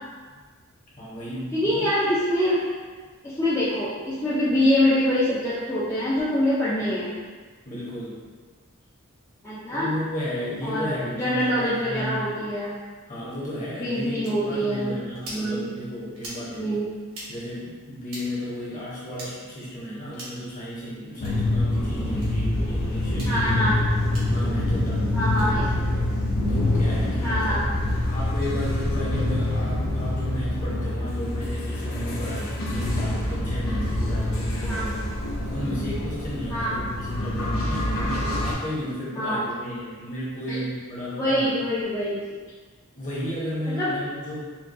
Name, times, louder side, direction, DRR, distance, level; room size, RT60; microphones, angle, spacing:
voice 1, 1.0-1.9 7.6-8.2 9.7-12.3 13.1-16.9 17.3-23.6 24.3-26.2 26.5-27.6 28.1-35.0 35.5-41.5 42.9-44.4, equal, 35° left, -8 dB, 1.0 m, -33 dB
voice 2, 1.5-2.6 3.2-7.1 9.4-9.9 10.6-12.7 13.8-15.0 15.3-15.6 16.6-16.9 22.1-22.3 23.2-23.8 25.1-25.6 27.2-27.6 34.6-35.0 36.5-36.8 39.1-39.5 40.5-40.6 41.2-42.2 43.7-43.9, equal, 15° left, -10 dB, 0.4 m, -25 dB
sound 1, 14.2-14.3 15.1-15.4 16.2-16.4 17.1-17.3 18.1-18.2 19.1-19.3 20.1-20.4 21.1-21.3 22.2-22.3 23.1-23.3 24.1-24.2 25.2-25.5, right 1 dB, 75° right, 1.1 m, -40 dB
sound 2, 21.2-38.5, left 1 dB, 85° left, 0.7 m, -26 dB
4.4 x 2.2 x 2.6 m, 1.4 s
head